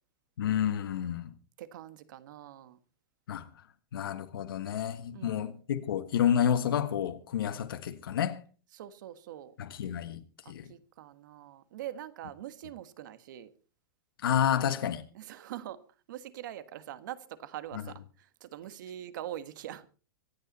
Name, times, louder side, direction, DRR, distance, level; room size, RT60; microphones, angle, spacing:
voice 1, 0.4-1.3 3.3-3.5 3.9-8.4 9.6-10.7 14.2-15.0, left 9 dB, 80° left, 1.6 m, -30 dB
voice 2, 1.6-2.8 5.1-5.5 8.7-9.5 10.4-13.5 15.1-15.8 16.1-19.9, right 12 dB, 60° right, 1.5 m, -43 dB
25.0 x 9.0 x 4.2 m
supercardioid pair, 155°, 12 cm